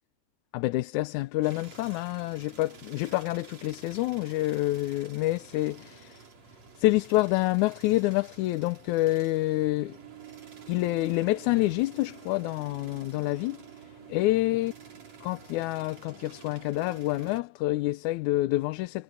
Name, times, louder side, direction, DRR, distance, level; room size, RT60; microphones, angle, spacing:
voice 1, 0.5-6.2 6.8-10.0 10.7-13.6 14.1-14.7 15.2-19.0, left 18 dB, 85° left, 2.0 m, -27 dB
sound 1, 1.4-17.4, right 6 dB, 60° right, 5.3 m, -50 dB
omnidirectional pair, 3.5 m